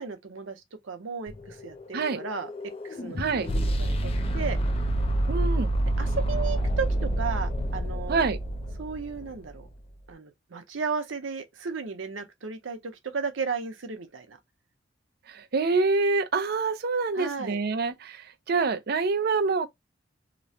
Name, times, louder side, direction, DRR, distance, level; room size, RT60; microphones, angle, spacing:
voice 1, 0.0-2.5 2.8-4.6 6.0-8.3 8.8-9.7 10.1-14.4 17.1-17.6, right 5 dB, 85° right, 0.8 m, -34 dB
sound 1, 1.3-9.4, right 1 dB, 30° left, 0.4 m, -28 dB
voice 2, 3.2-3.5 5.3-5.7 8.1-8.4 15.3-19.7, right 4 dB, 55° right, 0.5 m, -26 dB
3.0 x 2.1 x 2.7 m
head